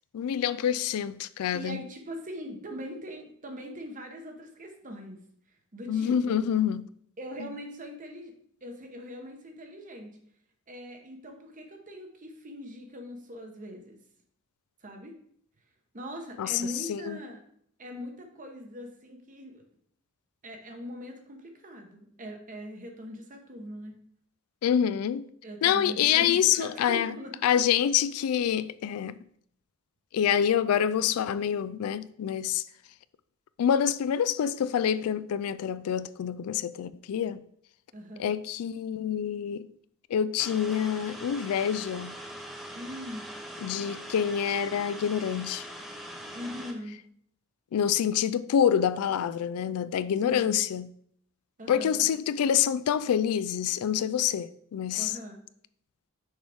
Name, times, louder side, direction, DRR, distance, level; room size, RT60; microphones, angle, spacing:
voice 1, 0.1-1.8 5.9-6.9 7.4-7.5 16.4-17.2 24.6-25.2 25.6-27.1 27.4-29.2 30.1-32.6 33.6-37.4 38.2-39.7 40.1-42.2 43.6-45.7 47.7-50.9 51.7-55.1, left 9 dB, 85° left, 0.3 m, -27 dB
voice 2, 1.5-5.2 5.7-6.4 7.2-8.3 8.6-10.1 10.7-14.0 14.8-15.2 15.9-17.4 17.8-19.6 20.4-23.9 25.4-27.6 37.9-38.3 42.7-43.2 46.3-47.0 50.2-50.6 51.6-52.1 55.0-55.4, equal, 35° right, 1.0 m, -41 dB
sound 1, 40.4-46.7, equal, ahead, 0.7 m, -42 dB
6.4 x 4.7 x 3.5 m
head